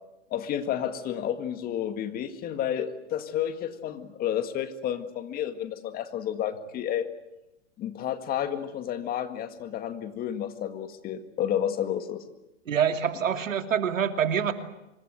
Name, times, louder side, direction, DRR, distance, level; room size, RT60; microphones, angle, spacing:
voice 1, 0.3-7.1 7.8-12.2, left 10 dB, 25° left, 10 dB, 1.9 m, -31 dB
voice 2, 12.7-14.5, right 8 dB, 90° right, 8 dB, 2.9 m, -26 dB
25.5 x 23.0 x 7.9 m, 0.95 s
hypercardioid pair, 140°, 38 cm